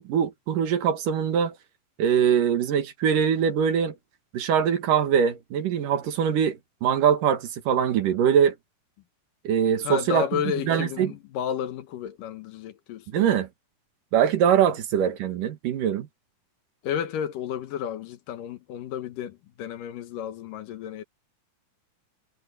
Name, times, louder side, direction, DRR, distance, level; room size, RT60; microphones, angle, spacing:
voice 1, 0.0-1.6 2.0-3.9 4.3-8.5 9.4-10.3 10.7-11.1 13.1-13.5 14.1-16.1, right 8 dB, 80° right, 3.4 m, -23 dB
voice 2, 9.8-13.4 16.8-21.0, left 9 dB, 85° left, 3.0 m, -32 dB
omnidirectional pair, 3.7 m